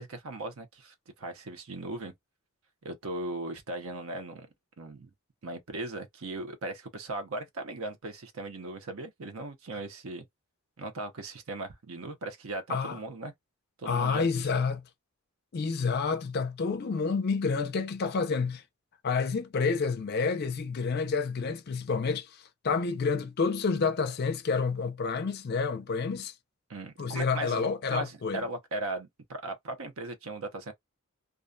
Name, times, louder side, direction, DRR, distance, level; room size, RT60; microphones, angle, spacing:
voice 1, 0.0-2.1 2.8-4.5 4.8-5.1 5.4-10.2 10.8-13.3 13.8-14.5 26.7-30.7, right 2 dB, 70° right, 0.6 m, -38 dB
voice 2, 13.9-14.8 15.5-18.6 19.0-22.3 22.6-26.3 27.0-28.4, left 5 dB, 45° left, 0.4 m, -29 dB
2.4 x 2.2 x 2.5 m
head